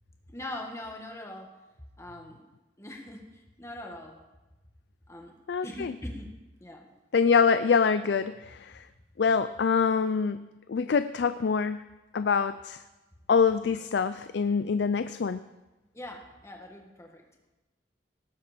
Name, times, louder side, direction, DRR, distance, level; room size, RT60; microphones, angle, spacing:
voice 1, 0.3-1.5 2.0-2.4 2.8-4.2 5.1-5.3 5.6-6.3 6.6-6.9 15.9-17.2, left 1 dB, 15° left, 2 dB, 1.7 m, -41 dB
voice 2, 5.5-5.9 7.1-8.9 9.2-11.8 12.1-12.8 13.3-15.4, left 5 dB, 70° left, 12 dB, 0.4 m, -25 dB
18.5 x 8.2 x 5.1 m, 1.1 s
head